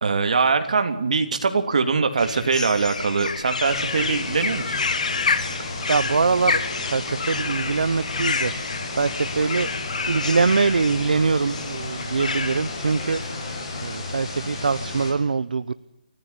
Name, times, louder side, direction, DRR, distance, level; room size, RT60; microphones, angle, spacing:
voice 1, 0.0-4.8, right 4 dB, 50° right, 8 dB, 3.1 m, -22 dB
sound 1, 2.2-13.2, left 5 dB, 55° left, 2.1 m, -29 dB
sound 2, 3.6-15.1, left 2 dB, 30° left, 6.8 m, -33 dB
voice 2, 5.5-8.5 8.9-9.7 10.1-13.2 13.8-15.7, right 4 dB, 70° right, 15 dB, 0.9 m, -23 dB
29.5 x 14.5 x 10.0 m, 0.92 s
hypercardioid pair, 175°, 5 cm